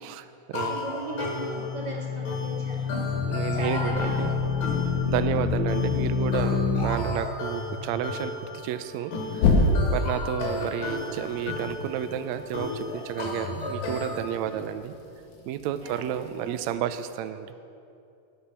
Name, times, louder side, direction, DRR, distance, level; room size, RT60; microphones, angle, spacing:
voice 1, 0.0-0.8 3.2-4.3 5.1-14.9 15.5-17.5, right 10 dB, 85° right, 10 dB, 1.6 m, -31 dB
sound 1, 0.5-14.3, left 3 dB, 80° left, 3.7 m, -34 dB
voice 2, 0.7-2.9 3.5-4.6 10.5-10.7 15.8-16.6, right 2 dB, 35° right, -4 dB, 2.2 m, -38 dB
sound 2, 1.1-6.8 9.4-10.1, left 5 dB, 65° left, 2.9 m, -26 dB
19.5 x 8.6 x 5.8 m, 2.7 s
omnidirectional pair, 3.9 m